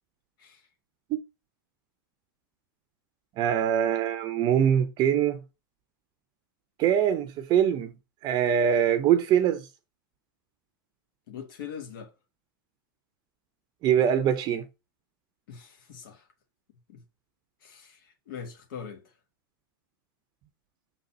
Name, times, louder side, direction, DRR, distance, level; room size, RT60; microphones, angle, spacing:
voice 1, 3.4-5.4 6.8-7.9 8.2-9.6 13.8-14.6, right 9 dB, 35° right, 0.6 m, -23 dB
voice 2, 11.3-12.1 15.5-16.3 16.9-17.0 17.6-19.0, left 7 dB, 70° left, 1.5 m, -42 dB
6.0 x 4.0 x 4.2 m
hypercardioid pair, 125°, 12 cm